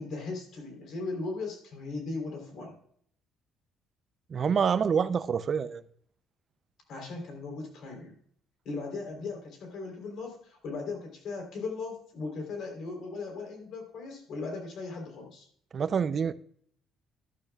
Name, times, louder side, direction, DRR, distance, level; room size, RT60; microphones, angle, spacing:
voice 1, 0.0-2.8 6.9-8.2 8.7-15.5, left 3 dB, 65° left, 3.5 m, -38 dB
voice 2, 4.3-5.8 15.7-16.3, right 6 dB, 40° right, 0.5 m, -27 dB
12.0 x 12.0 x 2.4 m
cardioid pair, 125°, 0 cm